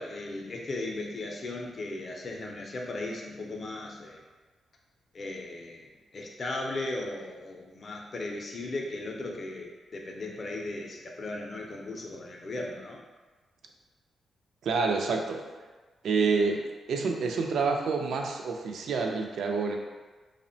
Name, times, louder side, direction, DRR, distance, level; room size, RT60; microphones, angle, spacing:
voice 1, 0.0-4.2 5.1-5.9 6.1-13.0, left 2 dB, 40° left, 0 dB, 0.4 m, -37 dB
voice 2, 14.6-15.4 16.0-19.8, right 4 dB, 75° right, 3 dB, 0.3 m, -28 dB
2.8 x 2.1 x 2.6 m, 1.3 s
cardioid pair, 120°, 0 cm